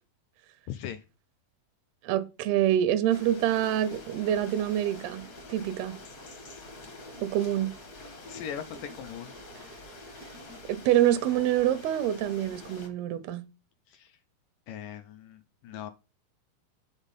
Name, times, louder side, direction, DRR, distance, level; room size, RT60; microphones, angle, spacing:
voice 1, 0.7-1.0 8.3-9.3 13.9-14.2 14.7-15.9, left 9 dB, 80° left, 1.9 m, -40 dB
voice 2, 2.0-5.2 5.5-6.0 7.2-7.7 10.7-13.4, right 11 dB, 90° right, 2.7 m, -26 dB
sound 1, 3.1-12.9, left 2 dB, 50° left, 1.0 m, -46 dB
7.2 x 4.0 x 5.3 m
omnidirectional pair, 4.3 m